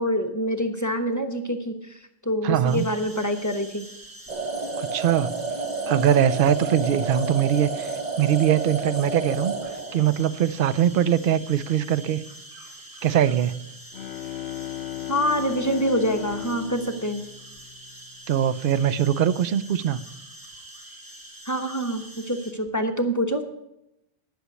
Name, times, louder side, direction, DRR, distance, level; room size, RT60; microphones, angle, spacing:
voice 1, 0.0-3.9 15.1-17.2 21.4-23.4, equal, 20° left, 4 dB, 1.0 m, -26 dB
voice 2, 2.4-2.9 4.8-5.3 5.9-9.5 9.9-12.2 13.0-13.5 18.3-20.0, right 10 dB, 60° right, 15 dB, 0.7 m, -22 dB
sound 1, 2.6-22.5, right 1 dB, 20° right, 2.3 m, -45 dB
sound 2, 4.3-10.4, right 3 dB, 45° right, 1.3 m, -30 dB
Bowed string instrument, 13.7-18.5, left 13 dB, 80° left, 0.8 m, -36 dB
11.0 x 6.4 x 8.2 m, 0.85 s
omnidirectional pair, 1.1 m